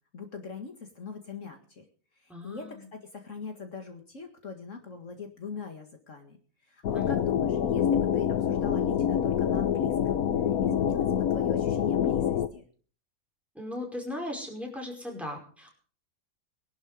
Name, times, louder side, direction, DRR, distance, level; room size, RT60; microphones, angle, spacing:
voice 1, 0.1-1.8 2.2-6.4 6.6-10.2 10.6-12.6, left 5 dB, 60° left, 4 dB, 2.2 m, -41 dB
voice 2, 2.3-2.9 6.9-7.2 13.5-15.7, left 1 dB, ahead, 0 dB, 5.1 m, -38 dB
sound 1, 6.8-12.5, left 9 dB, 80° left, 1.4 m, -26 dB
20.5 x 12.0 x 5.1 m, 0.43 s
omnidirectional pair, 1.5 m